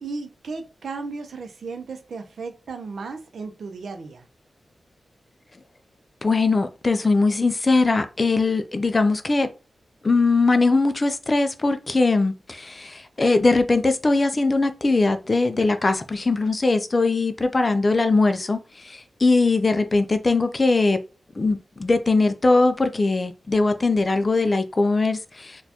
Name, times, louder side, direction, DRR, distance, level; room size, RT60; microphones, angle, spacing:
voice 1, 0.0-4.2, right 4 dB, 75° right, 0.5 m, -35 dB
voice 2, 6.2-9.5 10.0-21.0 21.4-25.6, left 3 dB, 30° left, 0.3 m, -21 dB
4.2 x 2.3 x 2.8 m
wide cardioid pair, 160°, 0 cm